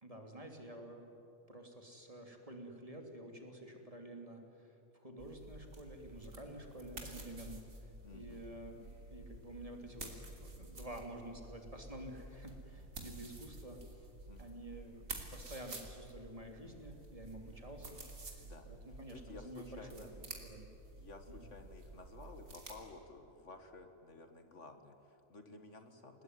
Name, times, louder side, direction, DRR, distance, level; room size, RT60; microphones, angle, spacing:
voice 1, 0.0-1.1 1.5-7.7 8.1-14.1 14.4-18.0 18.7-20.6, right 1 dB, 25° right, 3 dB, 3.0 m, -50 dB
sound 1, 5.2-22.7, right 2 dB, 70° right, 3.6 m, -51 dB
voice 2, 8.0-8.4 14.3-14.6 18.4-20.1 21.0-26.2, left 3 dB, 60° left, 7 dB, 2.1 m, -54 dB
29.5 x 19.5 x 9.5 m, 2.8 s
omnidirectional pair, 1.4 m